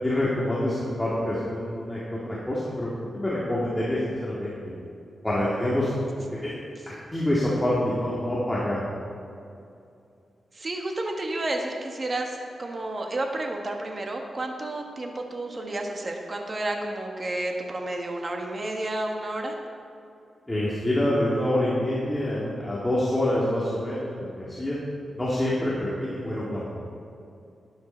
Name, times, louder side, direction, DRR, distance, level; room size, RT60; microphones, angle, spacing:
voice 1, 0.0-2.0 2.3-2.9 3.1-4.5 5.2-5.9 6.3-6.6 7.1-8.9 20.5-24.8 25.1-26.7, left 1 dB, 10° left, -7 dB, 1.8 m, -26 dB
voice 2, 10.5-19.6, right 2 dB, 30° right, 2 dB, 1.3 m, -31 dB
12.5 x 10.5 x 4.4 m, 2.6 s
wide cardioid pair, 135°, 0 cm